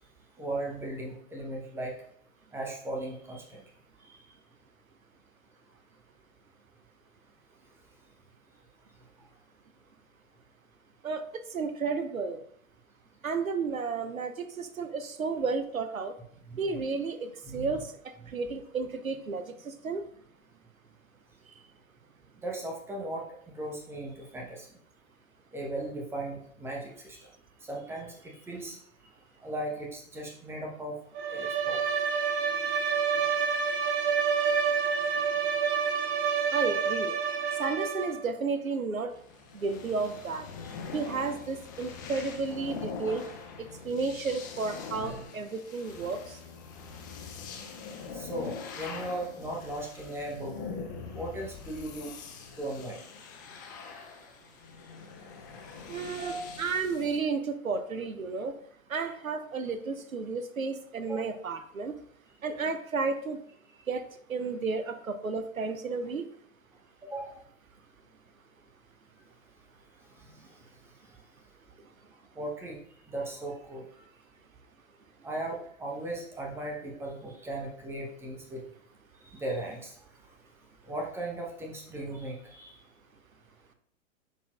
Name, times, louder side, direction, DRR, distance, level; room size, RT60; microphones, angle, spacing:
voice 1, 0.4-2.0 2.5-3.6 4.1-4.2 16.5-16.8 17.4-17.8 22.4-24.7 25.5-27.2 27.6-28.8 29.4-31.0 31.3-31.8 33.2-33.3 33.8-33.9 34.8-35.0 48.1-50.5 51.1-52.1 52.6-53.0 56.2-56.5 61.0-61.2 67.0-67.4 70.2-70.5 72.4-72.8 73.1-73.9 75.2-78.6 79.3-80.0 80.9-82.7, right 1 dB, 5° right, -1 dB, 1.0 m, -37 dB
voice 2, 11.5-12.4 13.2-16.2 16.6-17.9 18.3-20.1 36.5-37.2 37.6-39.1 39.5-40.5 40.9-43.3 43.6-46.4 55.9-58.6 58.9-62.0 62.4-63.4 63.9-66.3, right 4 dB, 80° right, 10 dB, 0.7 m, -32 dB
Bowed string instrument, 31.1-38.2, right 6 dB, 40° right, 0.9 m, -28 dB
sound 1, 39.1-57.2, left 5 dB, 15° left, 0.4 m, -43 dB
9.8 x 4.1 x 2.4 m, 0.66 s
figure-of-eight pair, 110°, 41 cm